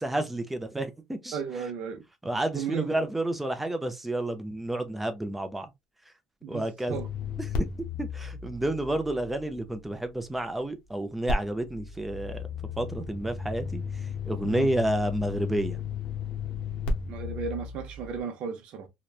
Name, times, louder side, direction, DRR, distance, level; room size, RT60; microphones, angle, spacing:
voice 1, 0.0-1.4 2.2-5.7 6.5-7.0 7.6-7.7 8.0-12.4 12.8-13.8 14.2-15.8, right 1 dB, 5° right, 0.5 m, -30 dB
voice 2, 1.3-2.0 2.5-3.0 6.4-7.1 14.4-14.7 17.1-18.9, right 6 dB, 60° right, 0.6 m, -35 dB
sound 1, 6.9-10.0 11.3-18.2, left 5 dB, 65° left, 0.7 m, -34 dB
2.9 x 2.1 x 2.3 m
cardioid pair, 145°, 2 cm